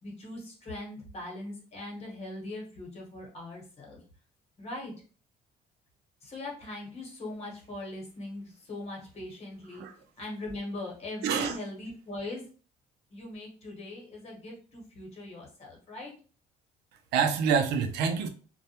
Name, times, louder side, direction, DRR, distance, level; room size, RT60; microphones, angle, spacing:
voice 1, 0.0-4.0 4.6-4.9 6.2-9.8 10.2-12.4 13.1-16.1, left 2 dB, 40° left, -1 dB, 1.1 m, -40 dB
voice 2, 11.2-11.6 17.1-18.3, right 6 dB, 85° right, 7 dB, 0.5 m, -27 dB
2.2 x 2.0 x 2.8 m, 0.38 s
cardioid pair, 110°, 17 cm